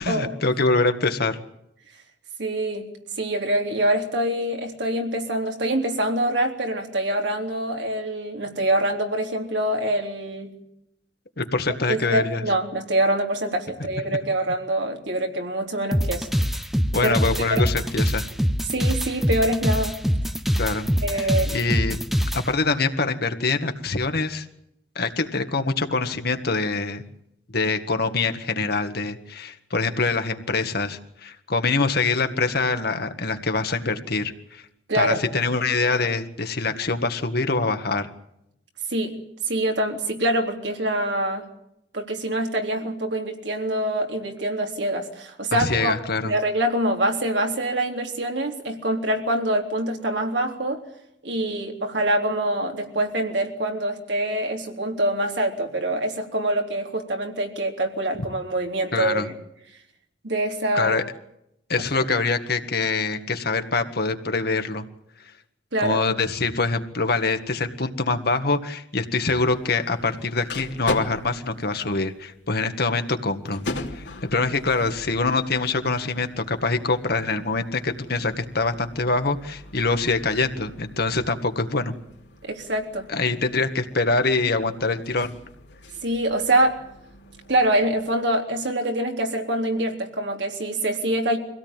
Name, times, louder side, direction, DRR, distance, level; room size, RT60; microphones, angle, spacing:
voice 1, 0.0-1.4 11.4-12.4 16.9-18.3 20.6-22.0 22.3-24.5 25.0-27.0 27.5-34.7 34.9-38.1 45.5-46.3 58.9-59.3 60.7-61.0 61.7-64.8 65.8-73.6 73.9-81.9 83.1-85.4, left 3 dB, 60° left, 7 dB, 1.8 m, -24 dB
voice 2, 2.4-2.9 3.2-10.5 11.9-16.3 17.0-17.2 17.5-17.6 18.7-20.0 21.0-21.6 34.9-35.2 38.9-39.2 39.5-41.5 41.9-45.9 46.2-50.8 51.2-59.4 60.2-61.0 65.7-66.0 82.4-83.1 86.0-86.8 87.5-91.4, right 1 dB, 75° right, 2 dB, 3.7 m, -25 dB
sound 1, 15.9-22.4, equal, ahead, 0.9 m, -23 dB
sound 2, 69.5-88.1, left 2 dB, 80° left, 3.1 m, -40 dB
24.5 x 17.0 x 9.1 m, 0.80 s
head